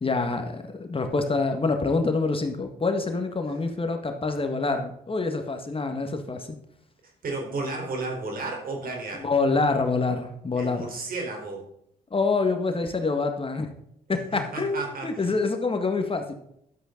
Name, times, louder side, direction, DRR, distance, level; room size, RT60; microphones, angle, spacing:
voice 1, 0.0-6.6 9.2-10.9 12.1-13.7 14.1-16.3, left 3 dB, 35° left, 6 dB, 1.8 m, -26 dB
voice 2, 7.2-9.3 10.6-11.6 14.1-15.4, right 3 dB, 60° right, 1 dB, 4.3 m, -33 dB
11.5 x 8.0 x 3.9 m, 0.75 s
supercardioid pair, 55°, 17 cm